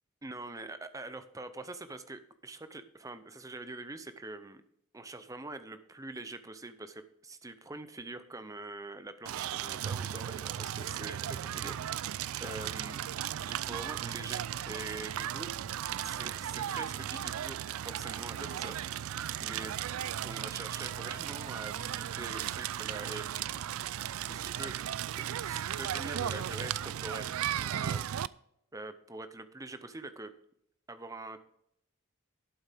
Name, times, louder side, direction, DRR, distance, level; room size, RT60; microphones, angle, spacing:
voice 1, 0.2-4.6 4.9-13.0 13.5-15.5 16.0-17.6 17.8-19.7 20.2-23.6 24.3-24.8 25.4-27.3 27.6-28.1 28.7-30.3 30.9-31.4, right 2 dB, 15° right, 11 dB, 0.7 m, -44 dB
Crackle, 9.3-28.3, right 10 dB, 85° right, 0.4 m, -36 dB
11.5 x 8.7 x 3.5 m, 0.75 s
head